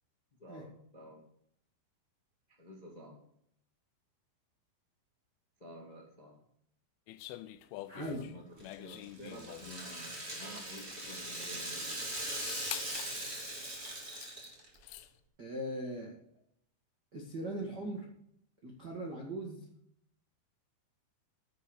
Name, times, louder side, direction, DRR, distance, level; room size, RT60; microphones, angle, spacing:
voice 1, 0.4-1.2 2.6-3.2 5.6-6.4 8.2-12.0, equal, 25° left, -1 dB, 0.8 m, -50 dB
Load Shotgun, 7.1-9.8 10.9-11.0 11.2-11.6 12.2-13.1 13.8-14.3 14.6-15.1, left 15 dB, 80° left, 3.1 m, -46 dB
voice 2, 7.9-8.3 15.4-16.1 17.1-18.0 18.6-19.6, right 1 dB, 70° right, -1 dB, 0.9 m, -39 dB
Rattle (instrument), 8.6-14.8, right 1 dB, 20° right, 1.7 m, -40 dB
10.0 x 8.2 x 6.4 m, 0.70 s
omnidirectional pair, 5.6 m